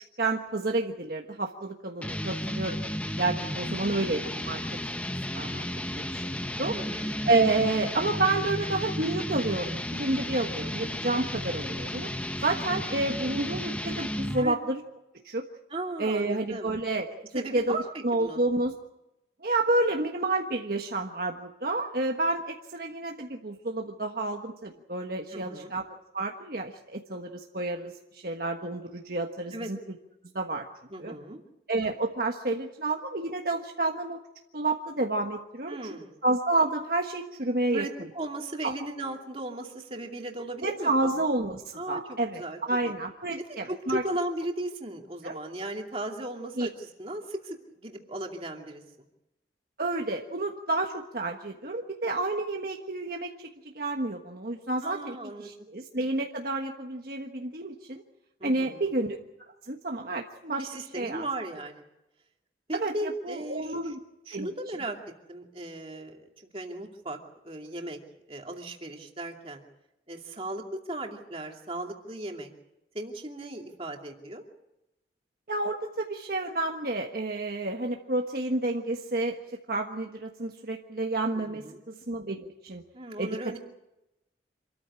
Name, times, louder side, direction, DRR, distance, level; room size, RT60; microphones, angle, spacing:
voice 1, 0.2-2.8 3.2-4.6 5.3-5.6 5.9-6.2 6.6-6.7 7.3-12.1 12.4-14.8 15.2-15.4 16.0-17.8 18.0-18.7 19.4-29.8 30.3-30.7 31.0-31.1 31.7-34.2 34.5-37.8 38.6-38.7 40.6-42.4 42.7-44.0 45.2-45.4 46.6-46.7 49.8-53.5 53.7-58.0 58.4-59.2 59.7-61.3 62.7-64.0 64.3-64.5 75.5-79.4 79.7-82.8 83.2-83.6, right 2 dB, 55° right, 2 dB, 1.4 m, -30 dB
sound 1, 2.0-14.5, left 1 dB, 5° left, 0.8 m, -33 dB
voice 2, 6.7-7.1 14.4-14.6 15.7-16.7 17.3-18.4 25.3-25.7 29.5-29.7 30.9-31.4 35.7-36.2 37.7-41.1 41.7-42.9 43.4-48.8 54.8-55.7 58.4-58.9 60.6-61.9 62.7-63.9 64.3-65.0 65.3-67.2 67.4-68.0 68.3-69.6 70.1-72.5 72.9-74.4 81.3-81.8 82.9-83.6, right 1 dB, 30° right, 2 dB, 2.7 m, -37 dB
26.5 x 14.0 x 9.9 m, 0.93 s
head